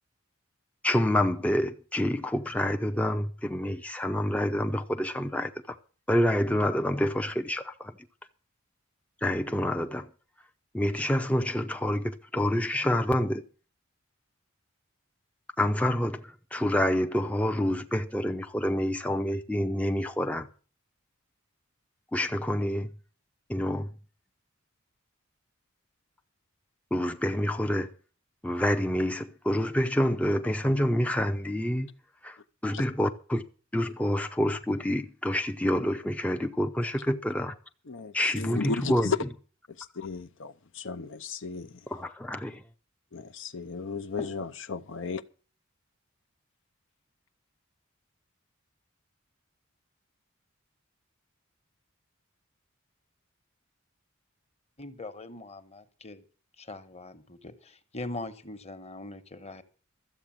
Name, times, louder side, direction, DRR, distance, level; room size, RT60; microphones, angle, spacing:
voice 1, 0.8-5.8 6.1-7.9 9.2-10.1 10.7-13.4 15.6-20.5 22.1-22.9 23.5-23.9 26.9-27.9 28.4-31.9 32.2-32.4 32.6-33.4 33.7-37.5 38.1-39.3 41.9-42.6, left 1 dB, 5° left, 0.6 m, -27 dB
voice 2, 37.9-39.2 40.0-41.7 43.1-44.4 44.7-45.2, left 4 dB, 65° left, 0.7 m, -34 dB
voice 3, 44.2-44.5 54.8-56.2 56.6-59.6, left 2 dB, 30° left, 1.2 m, -41 dB
13.5 x 7.9 x 7.5 m
head